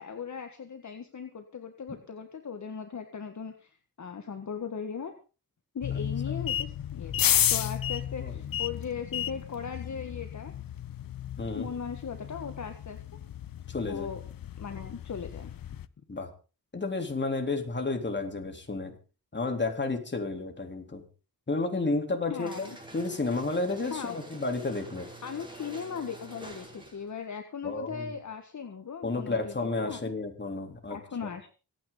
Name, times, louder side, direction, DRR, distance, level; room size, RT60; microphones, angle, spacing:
voice 1, 0.0-5.1 5.7-10.5 11.5-13.0 13.9-14.2 14.6-15.5 22.3-22.8 23.9-24.2 25.2-30.1 30.9-31.5, left 6 dB, 50° left, 6 dB, 1.7 m, -38 dB
sound 1, 5.8-15.8, left 10 dB, 70° left, 0.8 m, -32 dB
voice 2, 11.4-11.7 13.7-14.1 16.1-16.3 16.7-18.9 19.3-21.0 21.5-22.7 22.9-25.1 27.6-28.1 29.0-31.0, left 3 dB, 30° left, 4 dB, 3.5 m, -31 dB
sound 2, 22.4-27.1, right 1 dB, 15° right, 5.4 m, -47 dB
25.5 x 9.4 x 4.0 m, 0.35 s
cardioid pair, 95°, 36 cm